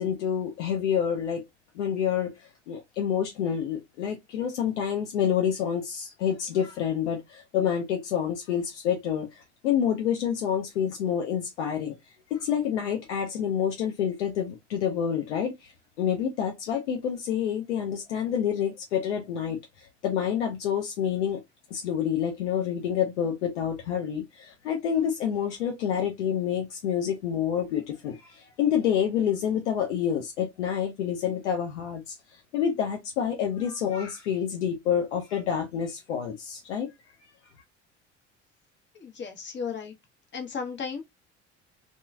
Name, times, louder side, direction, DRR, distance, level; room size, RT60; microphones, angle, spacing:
voice 1, 0.0-1.5 1.7-12.0 12.3-15.7 16.0-21.4 21.7-32.1 32.5-36.9, left 8 dB, 75° left, 0.6 m, -28 dB
voice 2, 38.9-40.0 40.3-41.0, left 6 dB, 30° left, 1.0 m, -34 dB
3.0 x 2.2 x 2.2 m
figure-of-eight pair, 55°, 35 cm